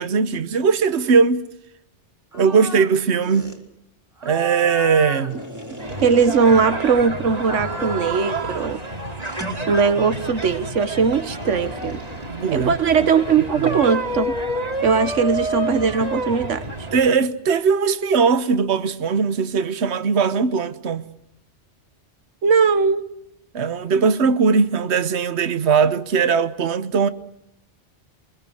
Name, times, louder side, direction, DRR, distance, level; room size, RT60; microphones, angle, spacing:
voice 1, 0.0-1.4 2.3-3.6 4.2-5.4 12.2-12.7 13.7-13.8 16.9-21.0 23.5-27.1, right 5 dB, 65° right, 1.4 m, -19 dB
sound 1, 2.3-2.9 3.2-3.6 4.2-7.0 7.4-8.8 9.2-10.3 11.4-13.2, right 1 dB, 15° right, 4.1 m, -35 dB
voice 2, 5.7-8.8 9.7-12.0 12.5-14.3 14.8-16.6 22.4-23.0, right 5 dB, 85° right, 1.5 m, -19 dB
sound 2, 5.8-17.1, right 1 dB, 35° right, 2.7 m, -29 dB
24.0 x 22.5 x 7.9 m
omnidirectional pair, 1.2 m